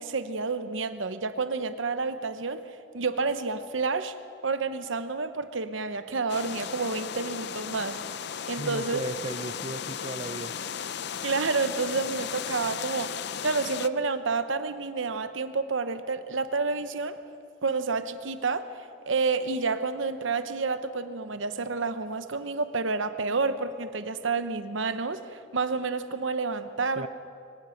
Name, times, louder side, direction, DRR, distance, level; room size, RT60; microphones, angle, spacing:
voice 1, 0.0-2.6 2.9-4.1 4.4-8.0 8.5-9.0 11.2-13.1 13.4-17.2 17.6-18.7 19.1-27.1, right 4 dB, 75° right, 11 dB, 1.0 m, -29 dB
sound 1, 6.3-13.9, left 8 dB, 55° left, 0.5 m, -36 dB
voice 2, 8.6-10.5 27.0-27.1, right 2 dB, 30° right, 10 dB, 0.5 m, -36 dB
23.5 x 18.5 x 5.9 m, 2.4 s
head